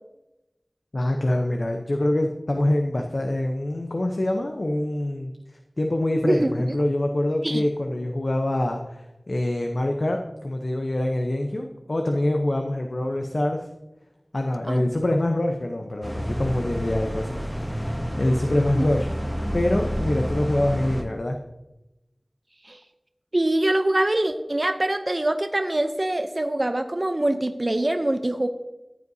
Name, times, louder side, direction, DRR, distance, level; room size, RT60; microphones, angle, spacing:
voice 1, 0.9-5.3 5.8-13.7 14.3-19.1 19.5-21.4, left 1 dB, 65° left, 3 dB, 0.7 m, -25 dB
voice 2, 14.7-15.0 18.7-18.9 22.6-22.8 23.3-28.5, right 1 dB, 45° right, 8 dB, 0.6 m, -24 dB
sound 1, 16.0-21.0, equal, ahead, 1.2 m, -29 dB
14.0 x 8.1 x 2.7 m, 0.97 s
wide cardioid pair, 45°, 0 cm